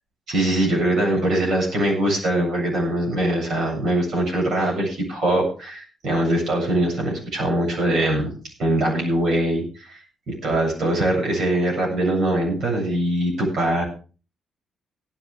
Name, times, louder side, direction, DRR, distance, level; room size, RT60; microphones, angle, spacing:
voice 1, 0.3-10.0 10.3-13.8, right 1 dB, 70° right, -1 dB, 7.9 m, -22 dB
18.0 x 11.0 x 3.5 m, 0.36 s
cardioid pair, 120°, 0 cm